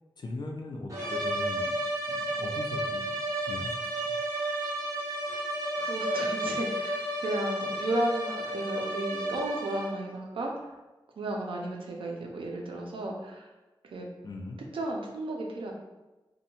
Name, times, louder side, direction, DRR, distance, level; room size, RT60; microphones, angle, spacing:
voice 1, 0.2-1.8 2.1-3.2 3.5-4.2 14.2-14.6, left 2 dB, 55° left, 1 dB, 0.4 m, -39 dB
sound 1, 0.9-10.1, right 1 dB, 40° right, 0.7 m, -32 dB
voice 2, 5.8-10.7 11.2-13.5 13.8-14.1 14.7-15.7, right 1 dB, 85° right, 0 dB, 0.5 m, -33 dB
2.7 x 2.1 x 2.8 m, 1.1 s
wide cardioid pair, 120°, 9 cm